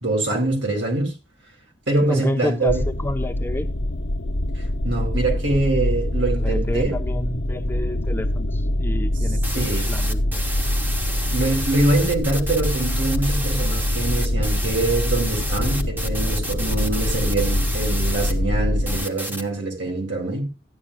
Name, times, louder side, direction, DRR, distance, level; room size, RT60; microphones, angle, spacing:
voice 1, 0.0-1.1 1.9-2.9 4.8-7.0 9.5-9.9 11.3-20.5, right 2 dB, 75° right, 3.7 m, -24 dB
voice 2, 2.0-3.7 6.4-10.5, left 1 dB, 10° left, 0.8 m, -30 dB
sound 1, 2.7-19.0, left 1 dB, 70° left, 0.8 m, -24 dB
sound 2, 9.4-18.3 18.9-19.4, right 1 dB, 10° right, 1.1 m, -31 dB
14.5 x 10.0 x 2.3 m
head